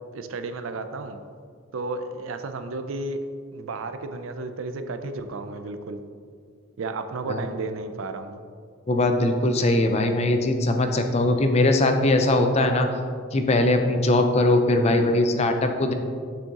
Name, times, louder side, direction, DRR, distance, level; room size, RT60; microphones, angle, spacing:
voice 1, 0.1-1.2 1.7-3.2 3.5-6.0 6.8-8.4 14.8-15.1, right 3 dB, 75° right, 9 dB, 0.4 m, -33 dB
voice 2, 8.9-12.9 13.3-15.9, left 2 dB, 30° left, 5 dB, 0.4 m, -21 dB
6.4 x 6.2 x 2.9 m, 2.1 s
head